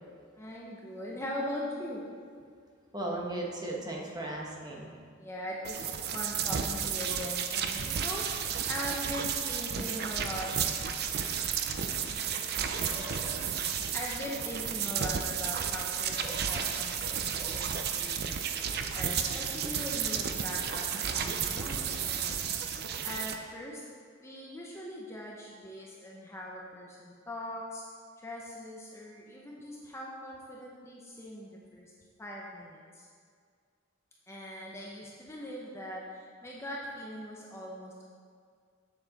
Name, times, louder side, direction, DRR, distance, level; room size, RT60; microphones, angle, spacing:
voice 1, 0.4-2.0 5.2-10.5 13.9-18.4 18.9-22.6 23.0-23.8 24.2-27.8 28.2-31.9 32.2-33.1 34.3-38.1, left 1 dB, 15° left, -3 dB, 0.7 m, -41 dB
voice 2, 2.9-5.0 11.9-12.0 12.8-13.4 16.2-16.6 17.4-17.9, right 1 dB, 20° right, -2 dB, 1.0 m, -38 dB
sound 1, 5.6-23.4, right 7 dB, 50° right, 0.5 m, -32 dB
7.8 x 6.9 x 4.0 m, 2.1 s
head